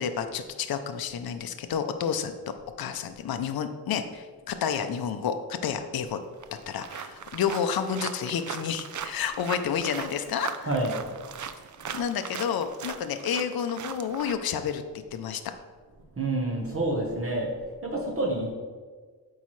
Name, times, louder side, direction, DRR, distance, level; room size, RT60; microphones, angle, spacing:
voice 1, 0.0-2.3 2.8-6.2 6.7-10.7 11.9-14.8 15.1-15.4, left 7 dB, 65° left, 8 dB, 0.5 m, -30 dB
sound 1, 6.0-6.1 6.4-14.3, right 8 dB, 50° right, 0.5 m, -39 dB
voice 2, 10.6-11.0 16.2-17.5 17.8-18.5, right 2 dB, 35° right, -1 dB, 1.1 m, -28 dB
8.1 x 4.7 x 3.1 m, 1.5 s
wide cardioid pair, 100°, 39 cm